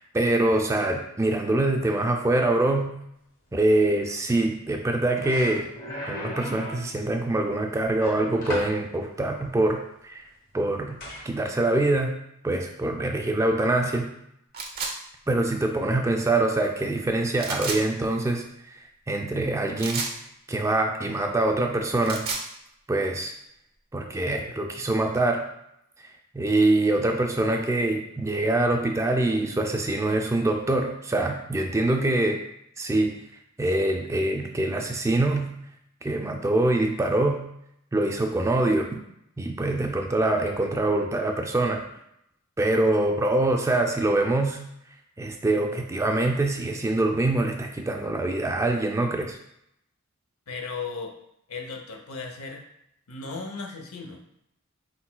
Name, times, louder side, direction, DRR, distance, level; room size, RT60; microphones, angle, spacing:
voice 1, 0.0-2.9 3.5-5.7 6.0-10.2 10.5-11.0 11.3-12.2 12.4-14.2 15.3-18.4 18.7-18.8 19.1-20.1 20.5-22.3 22.9-23.3 23.9-25.5 26.3-32.4 32.8-33.2 33.6-35.6 36.0-37.5 37.9-39.0 39.4-41.8 42.6-44.6 45.2-49.4, right 2 dB, 15° right, 3 dB, 0.3 m, -24 dB
sound 1, 4.7-4.9 5.2-6.9 8.0-8.8 11.0-11.3, left 1 dB, 40° left, 1.1 m, -35 dB
sound 2, 14.5-14.9 17.4-17.8 19.8-20.2 21.9-22.5, right 4 dB, 45° right, 0.7 m, -31 dB
voice 2, 50.5-51.2 51.5-52.7 53.1-54.2, left 4 dB, 75° left, 3 dB, 0.7 m, -36 dB
4.4 x 4.0 x 2.2 m, 0.77 s
head